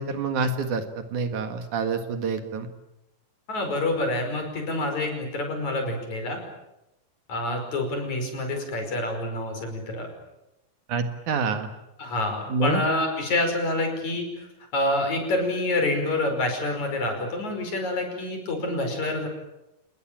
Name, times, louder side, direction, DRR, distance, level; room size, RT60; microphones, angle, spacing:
voice 1, 0.0-2.7 10.9-11.7 12.5-12.8, right 4 dB, 65° right, 8 dB, 3.1 m, -27 dB
voice 2, 3.5-6.4 7.3-10.1 12.0-14.5 14.7-19.3, left 2 dB, 55° left, 5 dB, 6.6 m, -27 dB
29.0 x 20.0 x 8.9 m, 0.91 s
omnidirectional pair, 3.8 m